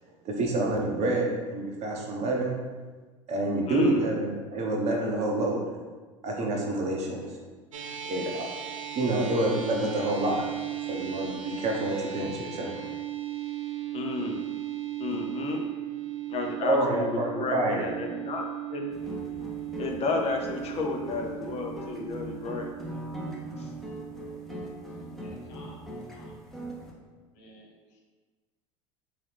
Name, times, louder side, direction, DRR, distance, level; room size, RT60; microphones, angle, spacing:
voice 1, 0.2-2.6 3.3-5.8 6.2-7.4 8.1-8.6 8.9-10.4 10.9-12.8 16.6-18.0, right 2 dB, 45° right, 0 dB, 0.9 m, -28 dB
voice 2, 3.7-4.0 13.9-14.5 15.0-15.6 16.3-18.8 19.8-22.7 23.6-23.7, left 3 dB, 40° left, 1 dB, 0.7 m, -32 dB
sound 1, 7.7-26.3, right 12 dB, 85° right, 0.5 m, -38 dB
sound 2, 18.9-26.9, equal, ahead, 0.8 m, -40 dB
voice 3, 25.2-25.8 26.1-26.3 27.3-28.0, left 1 dB, 65° left, -2 dB, 1.0 m, -52 dB
3.6 x 3.0 x 3.4 m, 1.4 s
hypercardioid pair, 75°, 16 cm